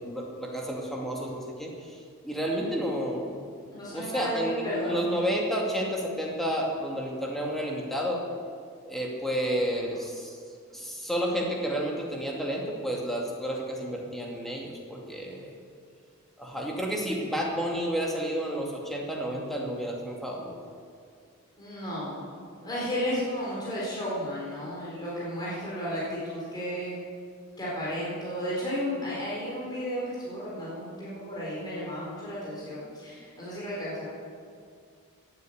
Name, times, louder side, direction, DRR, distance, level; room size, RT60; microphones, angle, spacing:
voice 1, 0.0-3.5 3.9-8.2 8.8-10.4 10.7-15.6 16.4-20.6, equal, ahead, -2 dB, 2.2 m, -31 dB
voice 2, 3.7-5.0 21.6-22.3 22.6-27.0 27.6-34.0, equal, 20° left, -8 dB, 4.6 m, -33 dB
17.0 x 9.6 x 8.0 m, 2.2 s
head